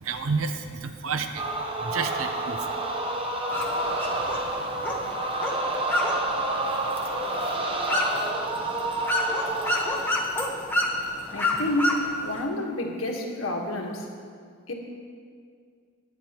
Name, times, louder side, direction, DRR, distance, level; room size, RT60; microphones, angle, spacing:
voice 1, 0.0-1.5 1.8-2.8 5.0-5.1, right 4 dB, 90° right, 7 dB, 0.7 m, -30 dB
sound 1, 1.4-10.2, right 2 dB, 25° right, 0.9 m, -29 dB
sound 2, 3.5-12.4, left 1 dB, 10° left, 1.1 m, -30 dB
voice 2, 11.3-14.1 14.7-14.8, left 1 dB, 80° left, 0 dB, 1.5 m, -29 dB
20.0 x 9.5 x 3.0 m, 2.2 s
head